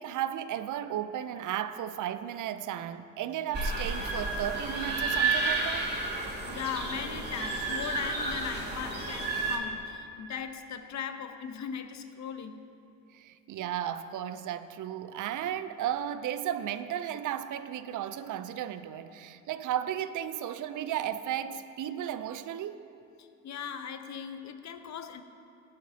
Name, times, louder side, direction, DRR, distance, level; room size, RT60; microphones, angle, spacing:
voice 1, 0.0-5.9 13.1-22.8, right 10 dB, 50° right, 0.6 m, -34 dB
sound 1, 3.5-9.6, right 3 dB, 25° right, 2.7 m, -31 dB
voice 2, 6.4-12.6 23.2-25.2, left 7 dB, 45° left, 0.9 m, -38 dB
17.0 x 11.5 x 2.8 m
hypercardioid pair, 55°, 38 cm